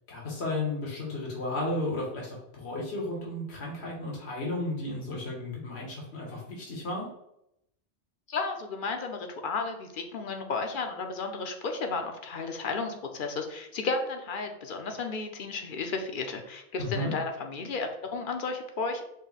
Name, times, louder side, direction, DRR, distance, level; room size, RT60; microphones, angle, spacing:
voice 1, 0.1-7.1 16.8-17.1, left 2 dB, 85° left, -3 dB, 1.4 m, -33 dB
voice 2, 8.3-19.0, left 4 dB, 60° left, 4 dB, 0.7 m, -33 dB
5.2 x 2.1 x 4.0 m, 0.79 s
omnidirectional pair, 1.1 m